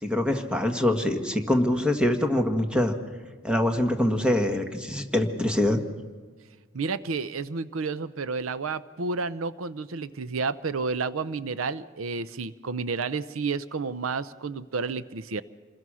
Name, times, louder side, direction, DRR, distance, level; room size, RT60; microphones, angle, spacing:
voice 1, 0.0-2.9 3.4-5.8, left 1 dB, 5° right, 5 dB, 1.6 m, -24 dB
voice 2, 6.7-15.4, right 4 dB, 90° right, 16 dB, 0.7 m, -31 dB
27.5 x 21.0 x 6.3 m, 1.4 s
head